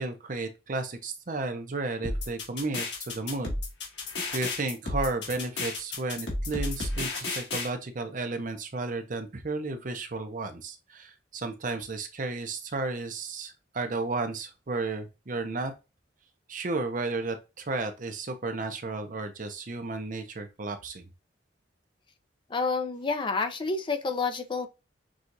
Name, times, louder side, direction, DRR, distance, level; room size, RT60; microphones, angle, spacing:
voice 1, 0.0-3.5 4.3-15.7 16.5-21.1, right 3 dB, 45° right, 0.7 m, -33 dB
sound 1, 2.0-7.7, left 2 dB, 70° left, 1.7 m, -32 dB
voice 2, 22.5-24.7, left 4 dB, 25° left, 0.5 m, -29 dB
6.1 x 2.4 x 2.6 m
head